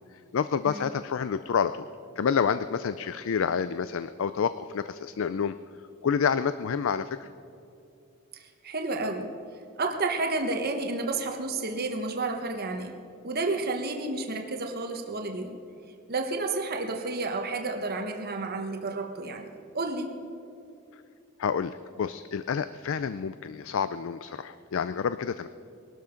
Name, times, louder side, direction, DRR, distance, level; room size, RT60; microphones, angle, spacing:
voice 1, 0.1-1.8 2.2-5.6 6.0-7.3 21.4-25.5, left 6 dB, 60° left, 13 dB, 0.4 m, -28 dB
voice 2, 8.6-9.3 9.8-13.0 13.2-15.6 16.1-19.5 19.7-20.1, right 3 dB, 45° right, 4 dB, 1.1 m, -31 dB
20.5 x 12.5 x 5.1 m, 2.6 s
head